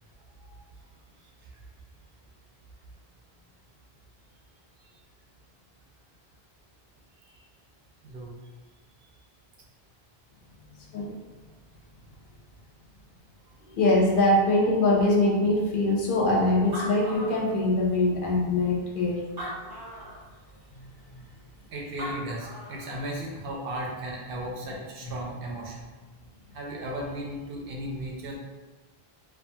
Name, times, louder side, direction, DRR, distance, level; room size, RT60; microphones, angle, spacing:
voice 1, 8.0-8.4 21.7-25.9 26.5-28.4, right 1 dB, 65° right, -2 dB, 0.7 m, -35 dB
voice 2, 13.6-19.2 19.6-19.7, left 2 dB, 65° left, -2 dB, 0.7 m, -23 dB
Animal, 16.5-18.0 18.6-18.7 19.2-20.2 21.7-21.8 22.0-22.9, equal, 35° right, 0.4 m, -38 dB
2.4 x 2.3 x 2.6 m, 1.3 s
omnidirectional pair, 1.1 m